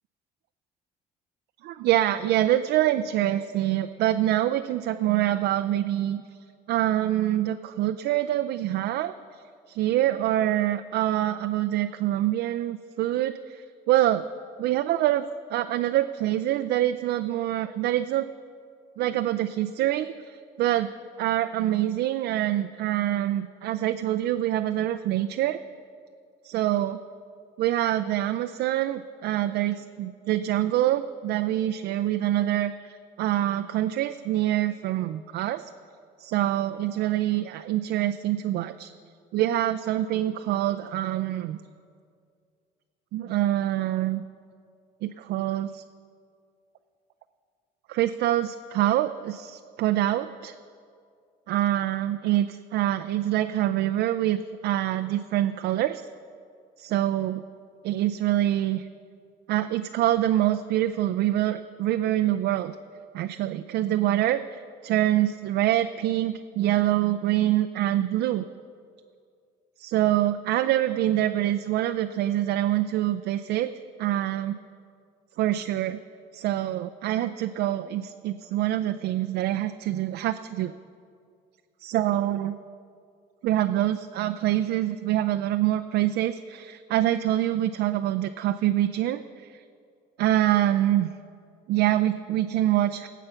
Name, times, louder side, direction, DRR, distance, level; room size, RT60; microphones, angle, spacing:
voice 1, 1.6-6.2 6.7-9.4 9.7-14.2 14.6-18.3 19.0-20.9 21.2-25.6 26.4-27.0 27.6-35.7 36.2-38.9 39.3-41.6 43.1-44.2 45.0-45.8 47.9-50.5 51.5-56.1 56.8-57.4 57.8-58.9 59.5-62.8 63.1-68.5 69.8-73.7 74.0-74.6 75.4-76.0 76.3-80.7 81.8-82.6 83.4-89.6 90.2-91.1 91.7-93.1, right 13 dB, 75° right, 8 dB, 0.5 m, -25 dB
19.0 x 8.3 x 5.7 m, 2.3 s
cardioid pair, 110°, 17 cm